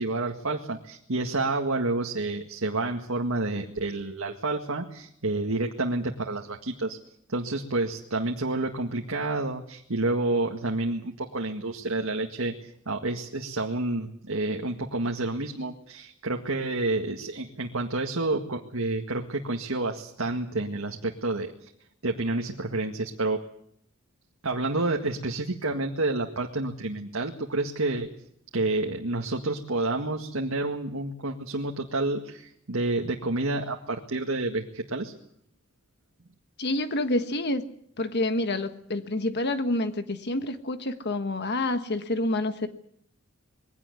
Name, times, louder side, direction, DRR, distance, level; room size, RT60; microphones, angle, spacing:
voice 1, 0.0-7.0 7.3-21.5 22.0-23.4 24.4-28.1 28.5-35.1, right 2 dB, 75° right, 2 dB, 1.9 m, -29 dB
voice 2, 36.6-37.6 38.0-42.7, left 2 dB, 55° left, 9 dB, 1.4 m, -28 dB
22.0 x 17.5 x 9.7 m, 0.69 s
head